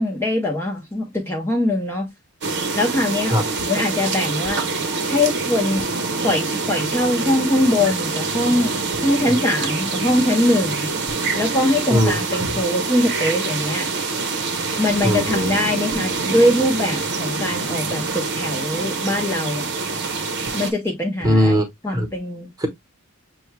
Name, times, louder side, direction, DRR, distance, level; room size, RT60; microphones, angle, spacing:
voice 1, 0.0-2.1 2.7-3.4 3.7-4.6 5.1-5.8 6.2-8.7 9.0-10.9 11.4-13.9 14.8-19.7 20.5-21.6 21.8-22.5, left 1 dB, 10° left, 0.7 m, -22 dB
sound 1, 2.4-20.7, right 4 dB, 55° right, 0.8 m, -25 dB
voice 2, 11.9-12.2 15.0-15.5 21.2-21.6 21.9-22.1 22.6-22.7, equal, 15° right, 1.2 m, -18 dB
6.7 x 2.3 x 3.2 m
head